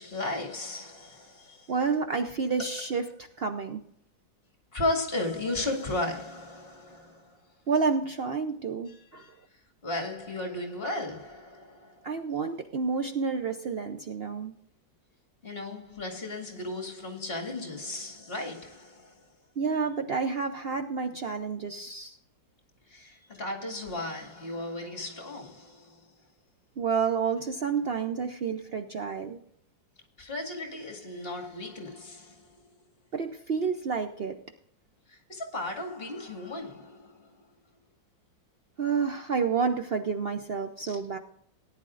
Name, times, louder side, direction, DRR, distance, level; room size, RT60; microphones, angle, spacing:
voice 1, 0.0-1.7 4.7-7.4 8.9-9.3 9.8-12.1 15.4-19.2 22.9-26.0 30.2-32.5 35.1-37.3 40.9-41.0, left 2 dB, 30° left, 2.2 m, -35 dB
voice 2, 1.7-3.1 3.4-3.8 7.7-9.3 12.0-14.5 19.6-22.2 26.8-29.4 33.1-34.4 38.8-41.2, right 5 dB, 90° right, 0.5 m, -29 dB
18.5 x 10.5 x 2.5 m
omnidirectional pair, 2.0 m